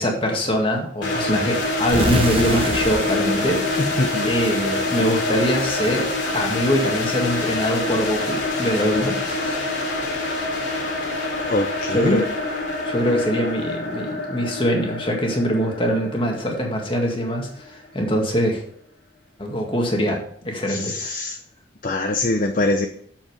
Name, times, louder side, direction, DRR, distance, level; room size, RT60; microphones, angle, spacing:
voice 1, 0.0-6.1 6.3-9.6 11.9-12.2 12.8-18.6 19.4-21.1, equal, 25° left, 1 dB, 1.9 m, -23 dB
sound 1, 1.0-17.9, left 2 dB, 75° left, 3.2 m, -26 dB
sound 2, 1.9-4.7, right 1 dB, 30° right, 1.0 m, -28 dB
voice 2, 3.8-4.3 11.4-12.2 20.7-21.4 21.8-22.9, left 2 dB, 45° left, 6 dB, 0.6 m, -23 dB
7.6 x 7.5 x 4.9 m, 0.64 s
head